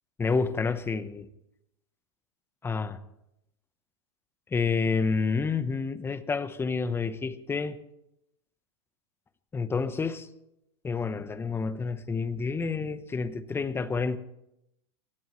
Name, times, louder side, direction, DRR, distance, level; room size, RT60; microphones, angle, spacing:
voice 1, 0.2-1.3 2.6-3.0 4.5-7.8 9.5-10.3 10.8-14.2, left 4 dB, 15° left, 1.0 m, -29 dB
23.0 x 17.5 x 3.2 m
hypercardioid pair, 115°, 16 cm